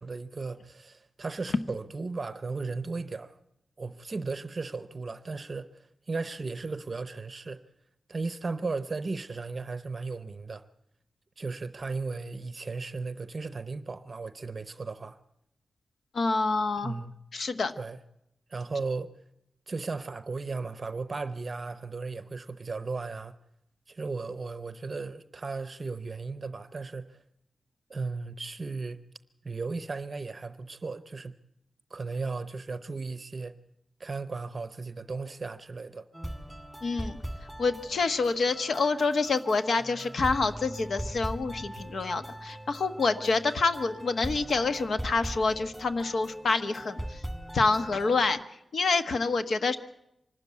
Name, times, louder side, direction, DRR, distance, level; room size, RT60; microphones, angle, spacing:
voice 1, 0.0-3.4 3.8-7.6 8.1-10.7 11.4-15.2 16.8-17.1 17.8-18.0 18.5-19.2 19.7-23.4 23.9-27.2 27.9-29.0 29.4-31.3 31.9-33.6 34.0-36.1, right 4 dB, 35° right, 0.7 m, -36 dB
voice 2, 16.1-16.9 17.3-17.7 36.8-37.2 37.6-47.2 47.5-48.4 48.7-49.8, left 3 dB, 60° left, 1.2 m, -27 dB
sound 1, 36.1-48.3, right 1 dB, ahead, 2.0 m, -40 dB
25.0 x 13.0 x 9.4 m
wide cardioid pair, 160°, 0 cm